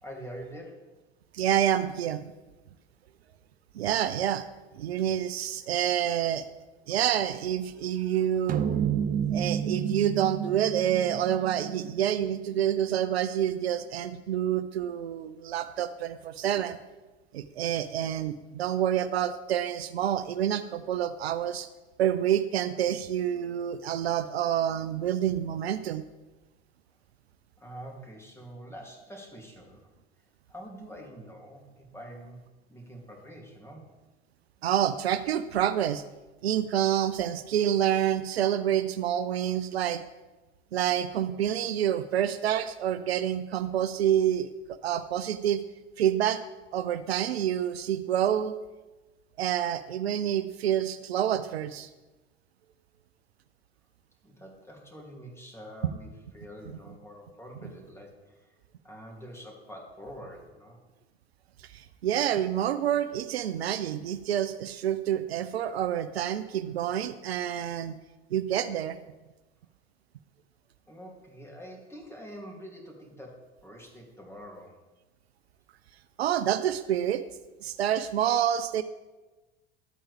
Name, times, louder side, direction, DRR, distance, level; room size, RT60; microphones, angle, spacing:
voice 1, 0.0-0.9 6.9-7.0 27.6-29.8 30.5-32.4 32.7-33.8 54.2-56.1 56.3-58.6 58.8-60.8 70.9-74.8, equal, 10° left, 0 dB, 2.9 m, -45 dB
voice 2, 1.3-2.2 3.7-4.5 4.7-6.5 6.9-8.6 9.3-16.8 17.3-21.7 22.0-26.1 34.6-36.0 36.4-40.0 40.7-45.6 46.0-46.4 46.7-48.5 49.4-51.9 61.6-68.0 68.3-69.0 76.2-77.2 77.6-78.8, right 10 dB, 75° right, 12 dB, 0.5 m, -28 dB
sound 1, 8.5-13.1, right 8 dB, 25° right, 0.6 m, -31 dB
12.0 x 8.7 x 3.5 m, 1.1 s
figure-of-eight pair, 65°, 32 cm